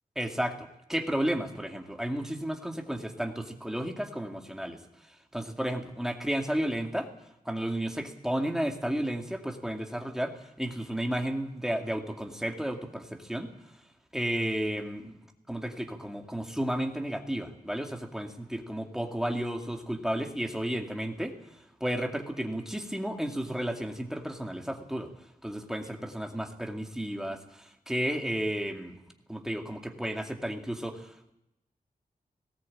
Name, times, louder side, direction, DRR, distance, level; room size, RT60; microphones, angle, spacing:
voice 1, 0.2-4.8 5.3-7.1 7.5-13.5 14.1-15.1 15.5-21.3 21.8-25.1 25.4-28.9 29.3-31.3, right 1 dB, 5° right, 3 dB, 2.3 m, -32 dB
19.0 x 17.5 x 8.7 m, 0.84 s
wide cardioid pair, 140°, 15 cm